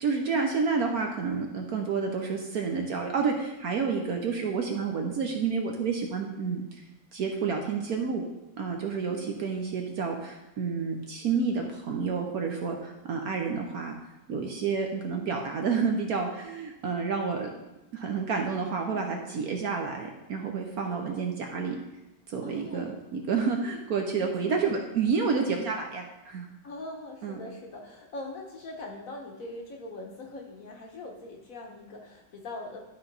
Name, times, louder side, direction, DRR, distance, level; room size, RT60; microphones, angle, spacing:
voice 1, 0.0-6.8 7.1-8.2 8.6-13.9 14.3-17.5 17.9-21.8 22.3-26.5 27.2-27.4, right 5 dB, 60° right, 2 dB, 1.1 m, -29 dB
voice 2, 9.0-9.5 18.9-19.2 20.8-21.4 22.4-23.0 24.1-24.8 26.6-32.8, left 2 dB, 55° left, 1 dB, 1.2 m, -42 dB
11.5 x 4.4 x 4.0 m, 0.96 s
omnidirectional pair, 2.1 m